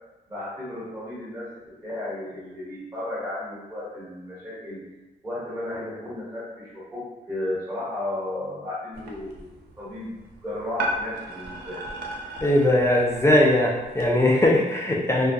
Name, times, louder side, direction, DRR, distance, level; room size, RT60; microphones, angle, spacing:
voice 1, 0.3-1.5 1.8-4.8 5.2-10.2 10.4-11.8, left 1 dB, 15° right, -9 dB, 1.3 m, -34 dB
sound 1, 8.9-14.1, right 1 dB, 80° right, 0.4 m, -36 dB
voice 2, 12.4-15.3, left 1 dB, 15° left, -1 dB, 0.3 m, -20 dB
2.5 x 2.2 x 2.2 m, 1.1 s
cardioid pair, 90°, 17 cm